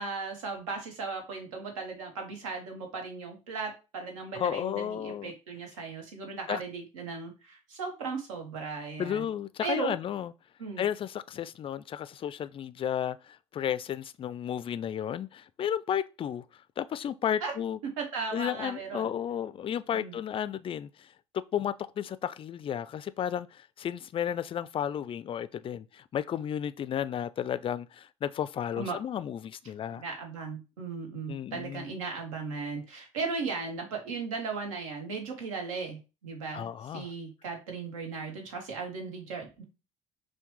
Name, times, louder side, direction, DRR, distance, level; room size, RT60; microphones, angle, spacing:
voice 1, 0.0-9.3 9.6-9.9 10.6-10.9 17.4-17.5 17.8-19.1 19.9-20.2 28.8-29.0 30.0-39.6, right 4 dB, 80° right, 1.1 m, -37 dB
voice 2, 4.3-5.3 6.5-6.6 9.0-10.3 10.8-16.4 16.8-17.8 18.3-30.0 31.3-31.9 36.5-37.1, left 9 dB, 35° left, 0.3 m, -33 dB
5.8 x 2.2 x 3.1 m
hypercardioid pair, 55°, 17 cm